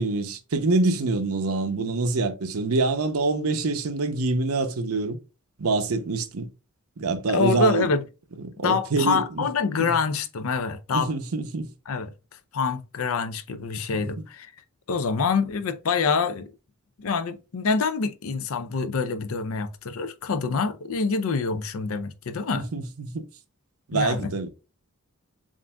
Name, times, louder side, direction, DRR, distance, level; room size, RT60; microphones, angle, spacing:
voice 1, 0.0-5.2 5.6-6.5 7.0-7.9 8.4-9.5 9.8-9.9 10.9-11.7 13.9-14.0 22.5-23.3 23.9-24.5, right 3 dB, 75° right, 0.7 m, -25 dB
voice 2, 7.3-8.0 8.6-11.1 11.9-12.1 12.5-14.5 14.9-16.5 17.0-22.7 23.9-24.3, left 4 dB, 70° left, 0.5 m, -26 dB
7.2 x 2.5 x 2.3 m
head